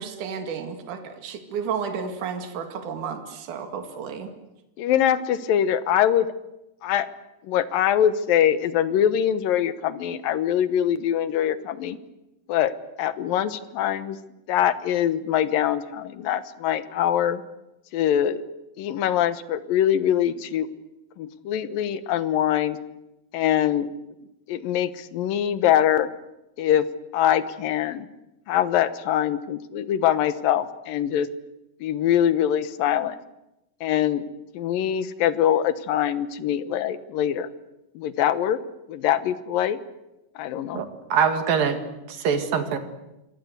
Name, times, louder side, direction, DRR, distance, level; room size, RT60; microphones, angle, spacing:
voice 1, 0.0-4.3, right 6 dB, 65° right, 6 dB, 3.6 m, -32 dB
voice 2, 4.8-6.3 6.8-7.1 7.4-12.0 12.5-12.7 13.0-14.2 14.5-17.4 17.9-18.4 18.8-20.7 21.2-22.8 23.3-23.9 24.5-26.1 26.6-26.9 27.1-28.1 28.5-31.3 31.8-33.2 33.8-34.2 34.5-37.5 37.9-38.6 38.9-39.8 40.4-40.8, left 10 dB, 90° left, 13 dB, 2.9 m, -23 dB
voice 3, 40.7-41.8 42.1-42.8, right 6 dB, 90° right, 8 dB, 3.9 m, -23 dB
27.0 x 24.5 x 8.1 m, 0.93 s
omnidirectional pair, 3.9 m